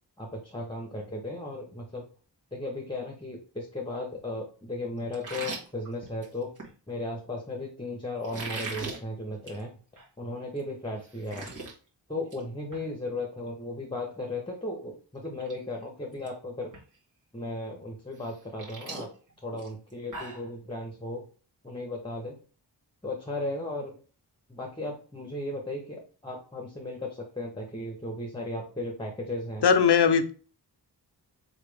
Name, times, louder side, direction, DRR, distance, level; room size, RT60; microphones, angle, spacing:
voice 1, 0.2-2.1 2.5-6.5 6.9-9.7 10.2-11.5 12.1-16.7 17.3-19.1 19.4-21.2 21.6-22.4 23.0-23.9 24.5-29.6, left 2 dB, 10° left, 0 dB, 1.1 m, -36 dB
sound 1, 5.1-6.7 8.2-9.0 9.4-9.6 10.0-10.1 10.6-10.7 10.9-11.7 12.1-12.4 12.7-12.8 14.7-14.8 15.2-15.5 15.8-16.3 16.7-16.8 18.2-20.5, right 3 dB, 45° right, 1.7 m, -39 dB
voice 2, 29.6-30.3, left 6 dB, 70° left, 9 dB, 0.7 m, -20 dB
4.4 x 3.3 x 3.3 m, 0.38 s
wide cardioid pair, 85°, 42 cm